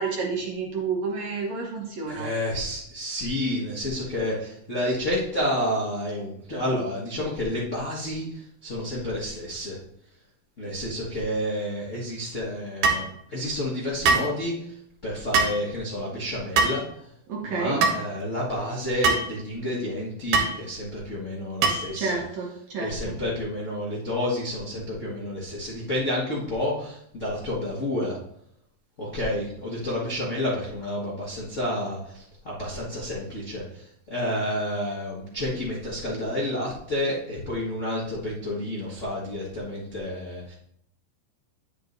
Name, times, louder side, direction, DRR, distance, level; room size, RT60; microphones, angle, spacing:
voice 1, 0.0-2.3 17.3-17.8 22.0-23.2, right 4 dB, 65° right, -1 dB, 1.8 m, -30 dB
voice 2, 2.1-9.8 10.6-14.7 15.0-16.8 17.4-22.1 22.8-28.2 29.0-40.5, left 1 dB, 75° left, -6 dB, 0.6 m, -30 dB
sound 1, 12.8-13.1 14.0-14.3 15.3-15.6 16.6-16.8 17.8-18.0 19.0-19.3 20.3-20.5 21.6-21.9, right 4 dB, 85° right, 2.8 m, -21 dB
10.0 x 7.3 x 2.6 m, 0.71 s
omnidirectional pair, 4.3 m